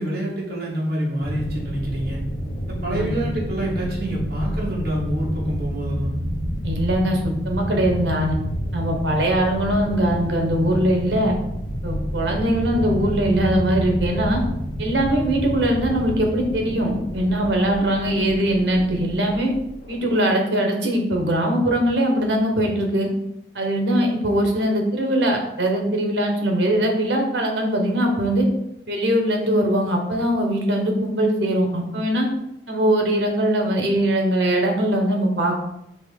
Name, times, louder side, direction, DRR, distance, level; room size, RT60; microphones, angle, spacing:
voice 1, 0.0-2.2 2.7-6.1, right 1 dB, 60° right, -4 dB, 2.3 m, -27 dB
sound 1, 1.2-20.0, equal, 65° left, 1.2 m, -29 dB
voice 2, 6.6-8.3 8.7-11.3 11.8-14.4 14.8-19.5 19.9-23.1 23.5-28.5 28.9-32.3 32.7-35.5, right 1 dB, 85° right, 2 dB, 1.5 m, -21 dB
6.2 x 3.2 x 5.4 m, 0.84 s
head